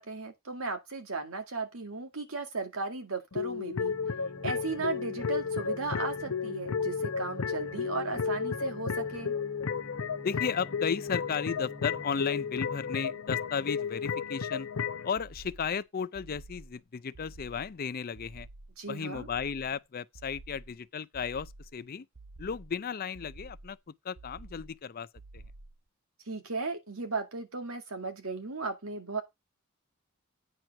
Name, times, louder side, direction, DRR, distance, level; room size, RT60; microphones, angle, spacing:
voice 1, 0.0-3.9 4.4-9.3 18.8-19.3 26.3-29.2, right 3 dB, 80° right, 2.0 m, -36 dB
sound 1, 3.3-15.1, left 6 dB, 85° left, 0.7 m, -33 dB
sound 2, 3.9-13.2, equal, 5° right, 0.7 m, -49 dB
voice 2, 10.2-14.7 15.0-18.5 18.9-22.1 22.4-25.1 25.3-25.4, left 6 dB, 45° left, 0.5 m, -34 dB
sound 3, 15.2-15.8 16.1-16.8 17.1-17.8 18.1-18.8 19.1-19.8 20.1-20.8 21.1-21.8 22.1-22.8 23.1-23.8 24.1-24.8 25.1-25.8, right 2 dB, 55° right, 0.8 m, -50 dB
9.2 x 4.4 x 5.8 m
head